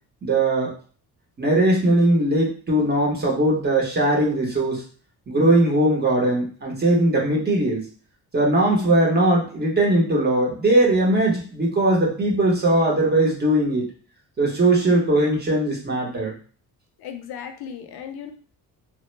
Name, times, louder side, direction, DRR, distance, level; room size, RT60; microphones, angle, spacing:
voice 1, 0.2-0.7 1.4-4.8 5.3-7.8 8.3-13.9 14.4-16.3, right 1 dB, 25° right, -2 dB, 0.8 m, -20 dB
voice 2, 17.0-18.3, left 8 dB, 75° left, 7 dB, 0.5 m, -36 dB
3.0 x 2.1 x 3.1 m, 0.41 s
cardioid pair, 175°, 38 cm